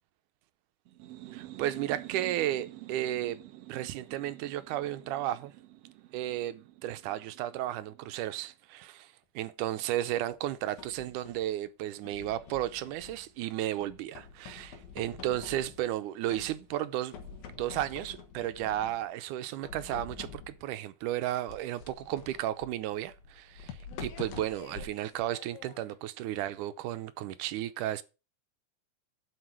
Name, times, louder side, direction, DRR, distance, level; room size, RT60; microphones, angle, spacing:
sound 1, 0.9-8.4, right 16 dB, 70° right, 1.6 m, -48 dB
voice 1, 1.3-3.4 3.7-5.5 6.1-17.3 17.6-28.0, right 13 dB, 85° right, 2.2 m, -34 dB
sound 2, 10.3-11.5 12.0-13.4 13.8-16.0 16.3-16.8 17.1-19.1 19.6-20.7 21.5-26.0, left 6 dB, 75° left, 2.7 m, -47 dB
8.0 x 6.2 x 7.4 m
omnidirectional pair, 3.6 m